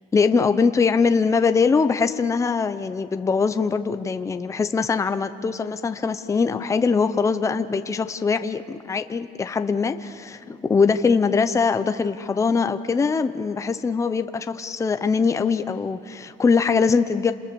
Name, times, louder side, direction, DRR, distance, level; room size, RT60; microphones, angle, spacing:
voice 1, 0.1-17.3, left 5 dB, 15° left, 9 dB, 0.7 m, -22 dB
29.0 x 27.5 x 6.9 m, 2.4 s
cardioid pair, 160°, 18 cm